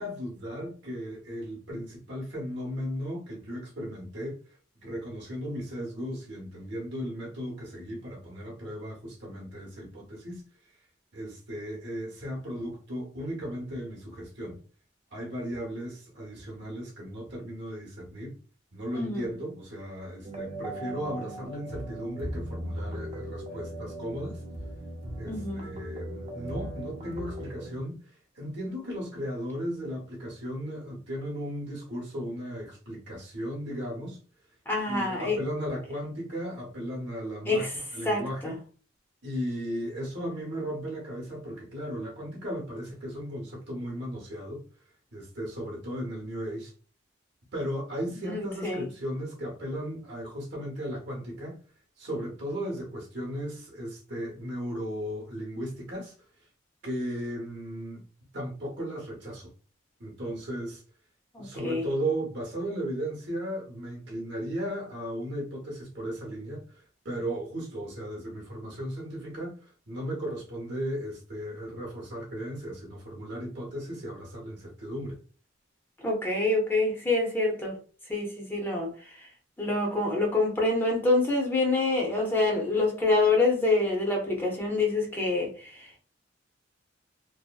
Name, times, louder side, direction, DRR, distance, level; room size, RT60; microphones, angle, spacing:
voice 1, 0.0-4.4 4.8-10.4 11.1-14.6 15.1-18.3 18.7-24.4 25.2-28.0 28.4-34.2 34.9-38.6 39.2-44.6 45.1-46.7 47.5-51.6 52.0-56.1 56.8-58.0 58.3-59.5 60.0-60.8 61.4-75.2, equal, 60° right, 0.8 m, -36 dB
sound 1, 20.2-27.8, right 1 dB, 35° right, 0.4 m, -38 dB
voice 2, 25.3-25.7 34.7-35.4 37.5-37.7 38.0-38.5 48.2-48.9 61.3-61.9 76.0-77.8 78.1-79.3 79.6-85.9, left 2 dB, 10° left, 0.6 m, -26 dB
2.6 x 2.1 x 2.2 m
head